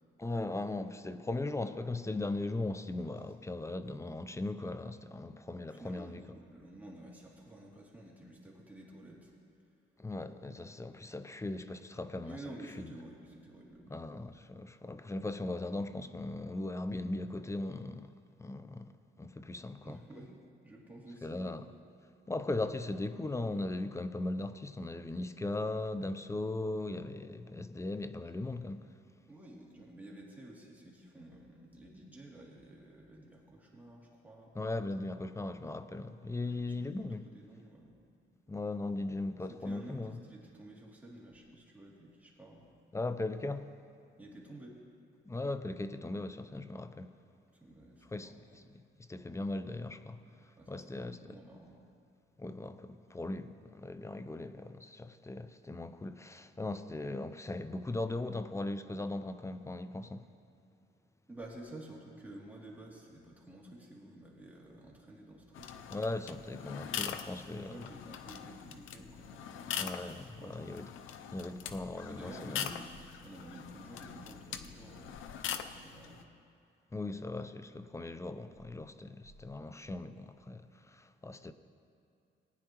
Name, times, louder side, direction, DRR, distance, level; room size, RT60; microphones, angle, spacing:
voice 1, 0.2-6.4 10.0-12.4 12.8-12.9 13.9-18.1 18.4-18.9 19.2-20.0 21.2-21.7 22.3-28.9 34.5-37.3 38.5-40.2 42.9-43.8 45.3-47.2 48.1-48.8 49.1-51.4 52.4-60.3 65.9-67.9 69.7-70.9 71.3-72.7 76.9-81.5, left 2 dB, 15° left, 0.5 m, -38 dB
voice 2, 5.7-9.3 12.2-14.3 19.8-20.3 20.6-21.6 29.3-34.5 36.4-37.0 37.3-37.9 39.5-42.7 44.2-44.8 47.6-48.4 50.6-51.8 61.3-65.8 67.2-69.9 70.4-70.8 72.0-72.9 73.2-75.3 75.7-76.3, right 1 dB, 10° right, 2.7 m, -51 dB
sound 1, 65.5-76.2, left 9 dB, 80° left, 0.6 m, -43 dB
19.5 x 9.8 x 3.0 m
cardioid pair, 90°, 20 cm